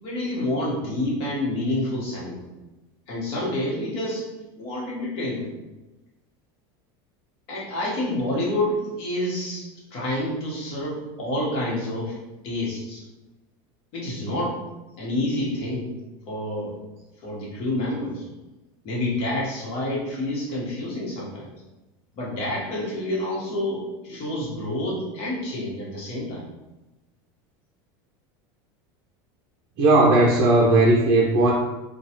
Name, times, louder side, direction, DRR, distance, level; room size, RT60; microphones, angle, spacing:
voice 1, 0.0-2.4 3.1-4.2 4.5-5.5 7.5-12.1 12.4-13.0 13.9-14.6 15.0-15.9 16.3-16.7 17.2-18.2 18.8-21.5 22.1-26.4, left 1 dB, 50° left, -5 dB, 1.2 m, -28 dB
voice 2, 29.8-31.5, right 2 dB, 45° right, -3 dB, 0.5 m, -17 dB
3.0 x 2.3 x 2.9 m, 1.1 s
supercardioid pair, 140°, 12 cm